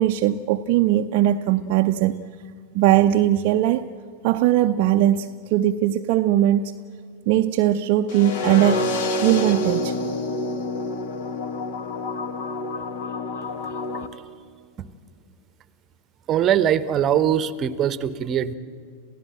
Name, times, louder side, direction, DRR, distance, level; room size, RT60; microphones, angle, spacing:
voice 1, 0.0-2.3 2.7-3.9 4.2-6.7 7.3-8.9 9.2-10.0, right 12 dB, 45° right, 0.6 m, -20 dB
sound 1, 8.1-14.1, left 2 dB, 50° left, 1.5 m, -28 dB
voice 2, 16.3-18.5, right 10 dB, 30° right, 0.9 m, -21 dB
28.0 x 16.0 x 7.7 m
figure-of-eight pair, 90°, 0 cm